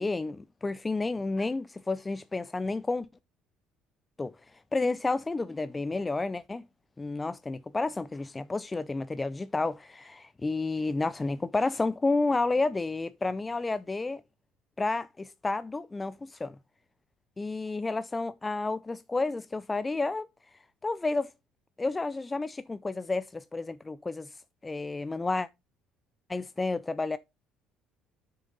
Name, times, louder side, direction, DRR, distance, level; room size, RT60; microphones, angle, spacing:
voice 1, 0.0-3.1 4.2-4.3 4.7-6.6 7.0-14.2 14.8-16.6 17.4-20.3 20.8-21.3 21.8-24.4 24.6-25.5 26.3-27.2, left 3 dB, 20° left, 0.4 m, -31 dB
8.5 x 6.6 x 3.9 m
cardioid pair, 95°, 0 cm